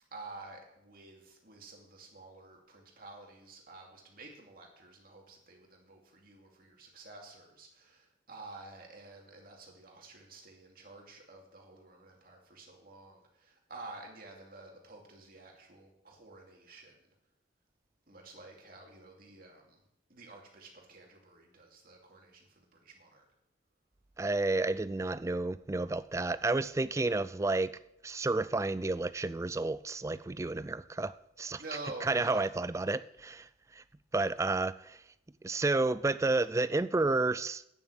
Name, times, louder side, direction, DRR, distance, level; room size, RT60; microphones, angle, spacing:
voice 1, 0.1-17.0 18.1-19.8 20.1-23.2 31.6-32.5, right 2 dB, 50° right, 2.5 m, -50 dB
voice 2, 24.2-27.8 28.0-31.6 32.0-33.8 34.1-35.0 35.4-37.6, right 2 dB, 15° right, 0.3 m, -31 dB
9.3 x 7.2 x 8.3 m
head